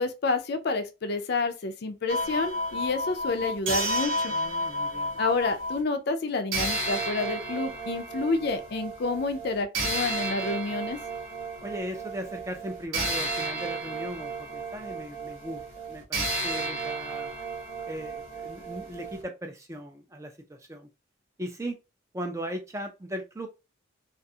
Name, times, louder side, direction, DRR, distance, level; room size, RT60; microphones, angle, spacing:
voice 1, 0.0-4.3 5.2-11.0, left 3 dB, 55° left, 0.4 m, -29 dB
sound 1, 2.1-5.8 6.5-19.2, right 1 dB, 80° right, 0.9 m, -32 dB
voice 2, 4.3-5.2 11.6-17.4 17.9-20.9 21.4-21.8 22.1-23.5, equal, 15° right, 0.3 m, -38 dB
2.4 x 2.3 x 2.7 m
head